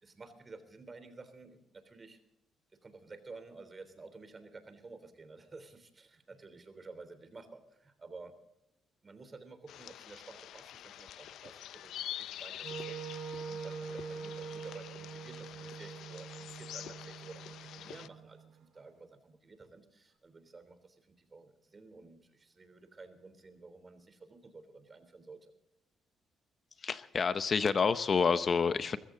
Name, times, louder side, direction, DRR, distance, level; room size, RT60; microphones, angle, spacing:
voice 1, 0.0-2.2 2.8-8.3 9.0-25.5, right 3 dB, 30° right, 10 dB, 3.4 m, -52 dB
sound 1, 9.7-18.1, left 11 dB, 80° left, 0.5 m, -46 dB
Wind instrument woodwind instrument, 12.6-18.7, right 6 dB, 80° right, 3.3 m, -44 dB
voice 2, 26.8-29.0, left 5 dB, 45° left, 12 dB, 0.8 m, -28 dB
22.5 x 14.5 x 3.9 m, 0.83 s
cardioid pair, 90°, 0 cm